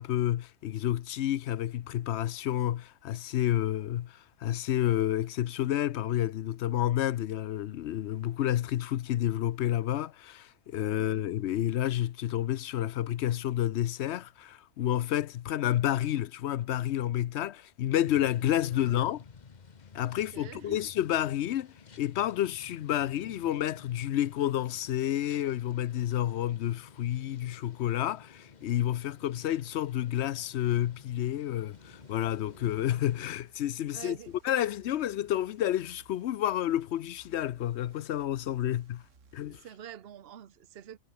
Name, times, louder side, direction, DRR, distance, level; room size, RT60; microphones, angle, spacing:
voice 1, 0.0-19.2 19.9-21.7 22.0-34.1 34.4-39.0 39.3-39.6, left 12 dB, 65° left, 0.8 m, -30 dB
voice 2, 10.9-11.3 18.7-19.0 20.1-20.8 33.9-34.4 38.6-38.8 39.5-41.0, right 9 dB, 50° right, 1.1 m, -47 dB
sound 1, 18.1-33.3, left 5 dB, 35° left, 1.0 m, -52 dB
sound 2, 31.7-39.6, right 5 dB, 70° right, 2.1 m, -62 dB
omnidirectional pair, 1.4 m